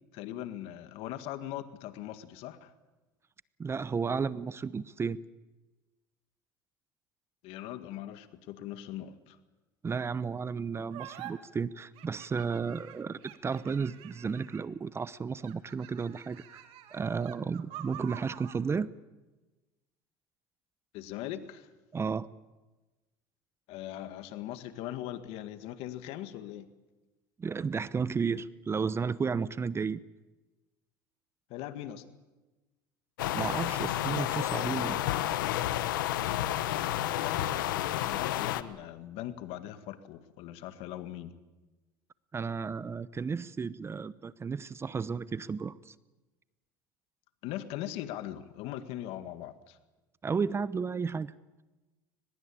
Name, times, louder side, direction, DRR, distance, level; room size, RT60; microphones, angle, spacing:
voice 1, 0.1-2.7 7.4-9.4 20.9-21.7 23.7-26.7 31.5-32.0 37.0-41.3 47.4-49.8, left 12 dB, 65° left, 11 dB, 1.9 m, -40 dB
voice 2, 3.6-5.2 9.8-16.6 16.9-18.9 21.9-22.3 27.4-30.0 33.3-35.0 42.3-45.9 50.2-51.3, right 5 dB, 25° right, 18 dB, 0.8 m, -33 dB
sound 1, 10.9-11.3 12.0-14.8 15.4-18.6, right 13 dB, 65° right, 2.4 m, -47 dB
sound 2, 33.2-38.6, left 13 dB, 90° left, 1.1 m, -30 dB
22.5 x 21.0 x 8.7 m, 1.1 s
supercardioid pair, 95°, 11 cm